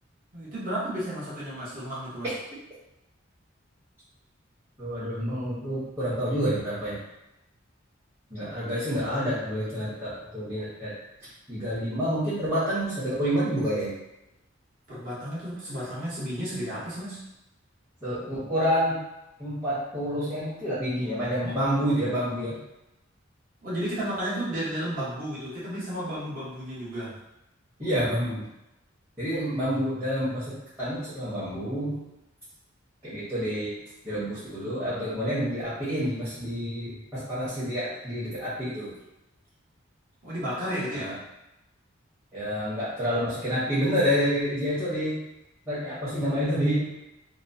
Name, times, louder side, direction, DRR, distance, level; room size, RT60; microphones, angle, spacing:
voice 1, 0.3-2.3 14.9-17.2 21.4-21.6 23.6-27.2 40.2-41.1, equal, 40° right, -9 dB, 1.0 m, -33 dB
voice 2, 4.8-7.0 8.3-10.9 11.5-13.9 18.0-19.0 19.4-22.6 27.8-28.5 29.2-32.0 33.0-33.7 34.0-38.9 40.9-41.2 42.3-45.2 45.7-46.9, equal, 15° right, -14 dB, 0.9 m, -28 dB
2.9 x 2.1 x 2.6 m, 0.92 s
head